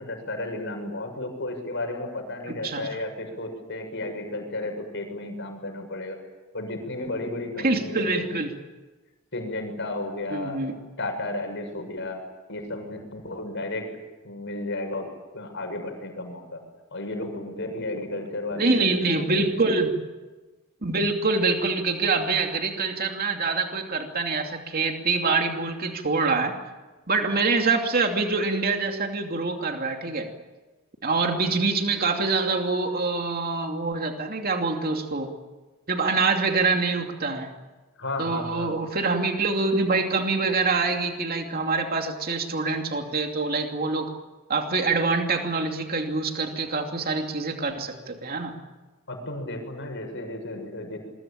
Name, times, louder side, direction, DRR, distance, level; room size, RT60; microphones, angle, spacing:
voice 1, 0.0-6.2 6.5-8.3 9.3-10.6 11.0-12.2 12.5-13.9 14.2-16.6 16.9-19.5 38.0-38.8 49.1-51.0, left 2 dB, 60° left, 5 dB, 6.8 m, -33 dB
voice 2, 7.6-8.5 10.3-10.7 18.6-19.9 20.8-26.6 27.1-30.3 31.0-35.3 35.9-37.5 38.2-44.1 44.5-48.5, right 3 dB, 45° right, 3 dB, 2.8 m, -25 dB
27.0 x 22.5 x 8.8 m, 1.2 s
head